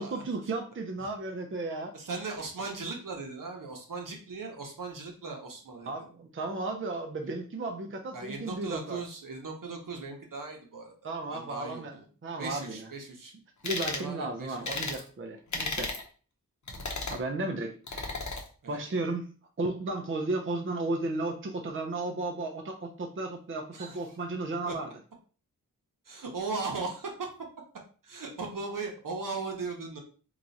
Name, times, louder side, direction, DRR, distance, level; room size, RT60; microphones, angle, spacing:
voice 1, 0.0-1.9 5.9-9.0 11.0-12.0 12.2-12.9 13.6-15.9 17.1-18.1 18.7-19.3 19.6-24.9, right 2 dB, 35° right, 3 dB, 0.6 m, -34 dB
voice 2, 1.9-5.9 8.1-12.1 12.4-13.3 13.9-14.8 18.6-18.8 23.7-24.0 24.7-24.8 26.0-27.3 28.0-30.0, right 3 dB, 70° right, 2 dB, 0.9 m, -38 dB
sound 1, 13.6-14.1 14.7-15.0 15.5-16.0 16.7-17.2 17.9-18.4, left 3 dB, 60° left, 0.8 m, -34 dB
3.0 x 2.4 x 3.9 m, 0.39 s
wide cardioid pair, 75°, 34 cm